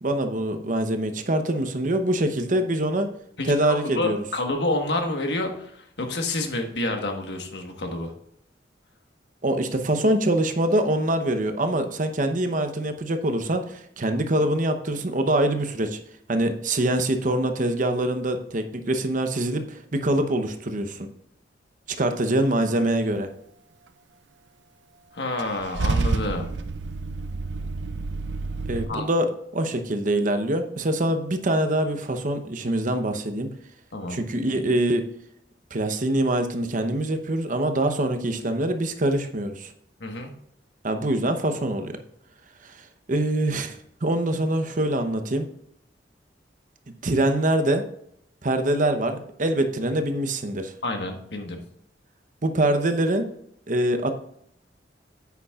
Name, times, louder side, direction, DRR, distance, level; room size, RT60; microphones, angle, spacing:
voice 1, 0.0-3.1 3.4-4.2 9.4-16.0 16.3-21.1 22.0-23.3 28.7-33.5 34.1-35.1 35.7-39.7 40.8-41.9 42.6-45.5 47.0-47.8 48.4-50.7 52.4-53.3 53.7-54.1, right 1 dB, 50° right, 7 dB, 0.9 m, -24 dB
voice 2, 3.4-8.1 25.1-26.5 28.9-29.1 33.9-34.2 40.0-40.3 50.8-51.6, left 2 dB, 70° left, 4 dB, 1.4 m, -28 dB
Car / Engine starting / Idling, 25.4-28.9, right 3 dB, 85° right, 0.5 m, -28 dB
9.8 x 8.3 x 2.4 m, 0.71 s
head